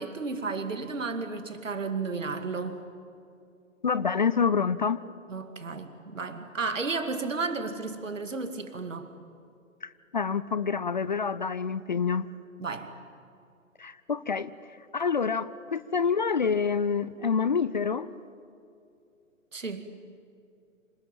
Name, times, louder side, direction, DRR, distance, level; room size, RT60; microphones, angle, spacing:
voice 1, 0.0-2.8 5.3-9.1 12.6-12.9 19.5-19.9, right 4 dB, 65° right, 8 dB, 2.4 m, -33 dB
voice 2, 3.8-5.0 9.8-12.3 13.8-14.5 14.9-18.1, left 6 dB, 35° left, 16 dB, 0.5 m, -27 dB
26.5 x 19.5 x 9.2 m, 2.6 s
figure-of-eight pair, 130°, 41 cm